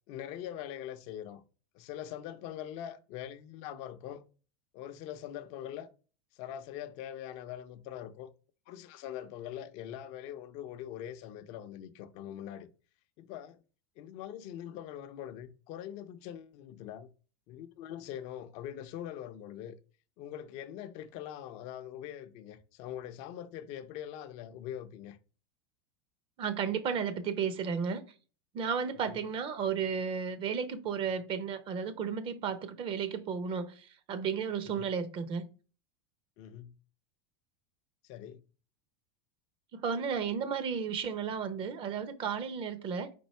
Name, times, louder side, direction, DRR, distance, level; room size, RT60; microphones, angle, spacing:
voice 1, 0.1-1.4 1.7-4.2 4.7-5.9 6.4-8.3 8.7-12.7 13.2-13.6 14.0-17.1 17.5-19.8 20.2-25.2 29.1-29.2 34.8-34.9 36.4-36.7 38.1-38.4, left 10 dB, 55° left, 0.6 m, -43 dB
voice 2, 26.4-28.0 28.5-35.5 39.7-43.1, right 6 dB, 40° right, 0.8 m, -33 dB
4.5 x 2.6 x 4.3 m
hypercardioid pair, 110°, 14 cm